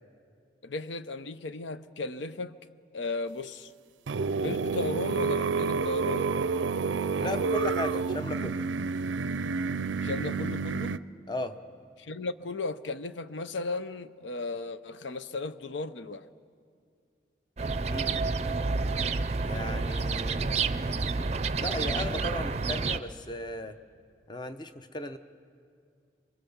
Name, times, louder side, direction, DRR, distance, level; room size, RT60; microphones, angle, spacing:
voice 1, 0.6-2.6 2.9-3.7 4.4-6.3 10.0-11.0 12.0-16.2, left 3 dB, 85° left, 0.7 m, -35 dB
sound 1, 4.1-11.0, right 4 dB, 90° right, 0.5 m, -29 dB
voice 2, 7.2-8.6 11.3-11.6 17.9-18.2 19.4-20.5 21.6-23.8 24.3-25.2, left 1 dB, 25° left, 0.7 m, -36 dB
sound 2, 17.6-23.0, right 4 dB, 35° right, 0.5 m, -29 dB
25.0 x 24.0 x 7.1 m
head